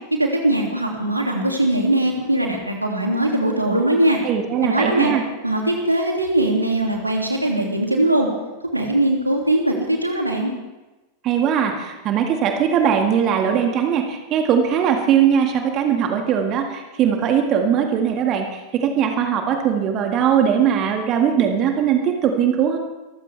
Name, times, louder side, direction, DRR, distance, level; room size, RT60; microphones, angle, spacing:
voice 1, 0.2-4.2 4.6-5.1 5.4-8.3 8.7-10.5, right 1 dB, 85° right, 1 dB, 2.7 m, -20 dB
voice 2, 4.2-5.2 11.2-22.8, right 8 dB, 35° right, 4 dB, 1.9 m, -20 dB
25.5 x 14.5 x 3.5 m, 1.1 s
figure-of-eight pair, 90°, 0 cm